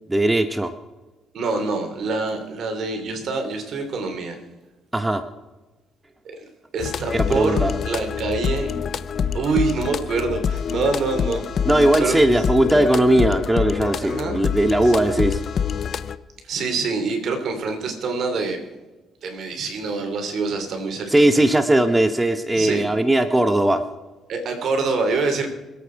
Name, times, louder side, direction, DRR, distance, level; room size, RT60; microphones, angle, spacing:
voice 1, 0.1-0.7 4.9-5.3 7.1-7.7 11.6-15.4 21.1-23.8, right 1 dB, 10° right, 9 dB, 1.0 m, -18 dB
voice 2, 1.3-4.4 6.2-6.4 6.7-8.7 9.3-11.4 12.0-12.4 14.0-14.4 14.8-14.9 16.4-18.6 19.2-21.4 22.5-22.8 24.3-25.5, right 4 dB, 65° right, 5 dB, 3.3 m, -25 dB
sound 1, 6.8-16.2, left 7 dB, 55° left, 0.7 m, -26 dB
25.5 x 8.7 x 4.7 m, 1.2 s
cardioid pair, 90°, 0 cm